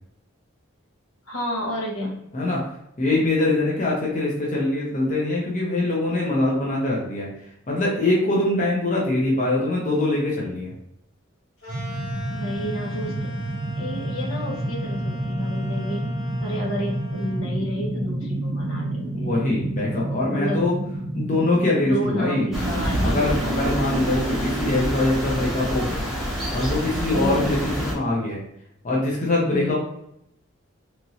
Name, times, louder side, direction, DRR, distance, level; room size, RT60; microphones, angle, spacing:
voice 1, 1.3-2.2 12.3-13.3 13.8-16.1 16.4-19.3 20.3-20.7 21.7-23.2 27.1-27.5 29.4-29.8, equal, 75° left, -1 dB, 0.8 m, -30 dB
voice 2, 3.0-7.3 7.7-10.7 19.1-20.8 21.1-22.5 23.0-26.0 26.5-28.4 28.8-29.8, left 2 dB, 35° left, -4 dB, 0.6 m, -23 dB
sound 1, 11.6-17.5, left 1 dB, 60° left, 1.2 m, -41 dB
sound 2, 11.7-24.9, right 1 dB, 35° right, 0.5 m, -29 dB
sound 3, 22.5-27.9, equal, ahead, 0.7 m, -27 dB
3.0 x 2.5 x 2.7 m, 0.78 s
head